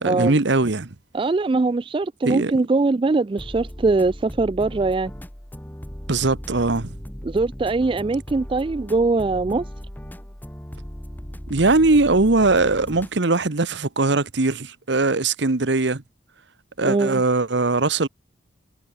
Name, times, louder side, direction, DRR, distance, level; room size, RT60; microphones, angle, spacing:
voice 1, 0.0-0.9 2.2-2.5 6.1-6.9 11.5-16.0 16.8-18.1, right 3 dB, 60° right, 1.1 m, -20 dB
voice 2, 1.1-5.1 7.2-9.7 16.8-17.2, right 3 dB, 25° right, 0.3 m, -22 dB
sound 1, 3.4-13.2, equal, 10° left, 1.2 m, -37 dB
head